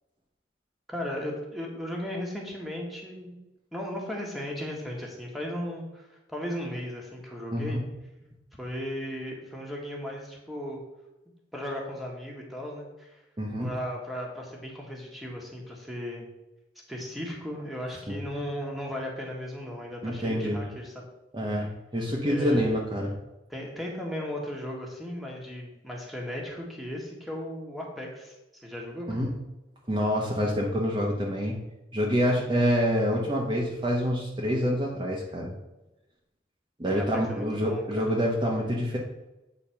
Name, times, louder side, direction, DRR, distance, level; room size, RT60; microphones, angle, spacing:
voice 1, 0.9-3.4 3.7-7.8 8.6-10.8 11.5-13.2 13.6-16.3 16.9-21.0 22.2-22.8 23.5-28.3 28.6-29.2 36.8-38.2, equal, ahead, -2 dB, 1.5 m, -36 dB
voice 2, 7.5-7.9 13.4-13.7 18.1-18.2 20.0-20.6 21.3-21.7 21.9-23.1 29.1-29.4 29.9-31.6 31.9-35.5 36.8-39.0, equal, 25° right, -2 dB, 1.0 m, -27 dB
8.6 x 4.0 x 5.8 m, 0.98 s
head